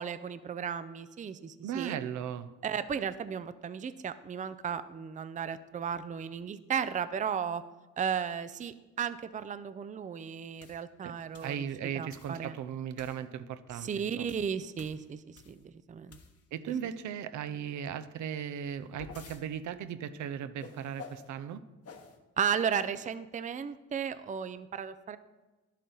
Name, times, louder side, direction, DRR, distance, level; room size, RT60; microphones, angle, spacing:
voice 1, 0.0-2.0 2.6-7.6 8.0-11.6 11.9-12.5 13.8-16.2 22.4-25.2, right 7 dB, 25° right, 13 dB, 0.5 m, -35 dB
voice 2, 1.6-2.5 11.0-11.1 11.4-14.3 16.5-21.6, right 8 dB, 75° right, 12 dB, 0.6 m, -37 dB
sound 1, 10.6-10.8 11.3-11.6 12.1-12.4 13.0-13.2 13.7-15.7 16.1-16.6 18.5-19.4 20.6-21.3 21.8-22.2, left 5 dB, 50° left, 1.3 m, -50 dB
11.0 x 8.4 x 3.9 m, 1.2 s
cardioid pair, 90°, 30 cm